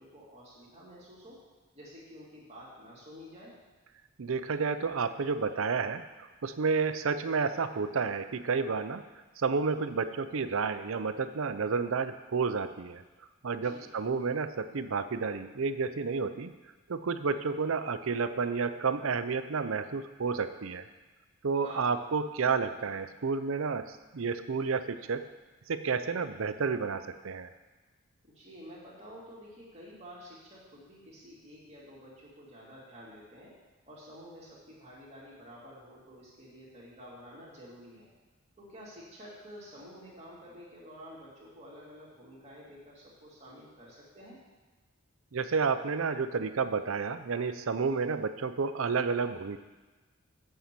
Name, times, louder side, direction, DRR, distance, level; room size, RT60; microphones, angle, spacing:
voice 1, 0.0-1.4 1.7-3.5 13.5-13.8 21.6-22.0 28.2-33.5 33.9-38.1 38.6-44.4, equal, 30° right, -6 dB, 2.4 m, -50 dB
voice 2, 4.2-6.0 6.4-9.0 9.4-13.0 13.4-16.5 16.9-20.8 21.4-25.2 25.7-27.5 45.3-49.6, right 5 dB, 70° right, 10 dB, 0.6 m, -30 dB
8.6 x 5.7 x 7.5 m, 1.3 s
head